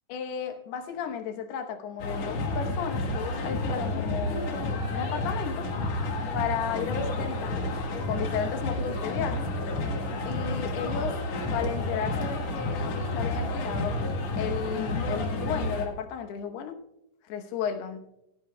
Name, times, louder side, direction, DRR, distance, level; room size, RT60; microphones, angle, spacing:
voice 1, 0.1-5.7 6.3-7.7 8.1-9.5 10.3-11.2 11.5-14.0 14.4-16.8 17.3-18.0, left 8 dB, 85° left, 6 dB, 3.1 m, -34 dB
sound 1, 2.0-15.9, left 2 dB, 55° left, 2.2 m, -30 dB
17.0 x 14.5 x 2.2 m, 0.85 s
omnidirectional pair, 4.5 m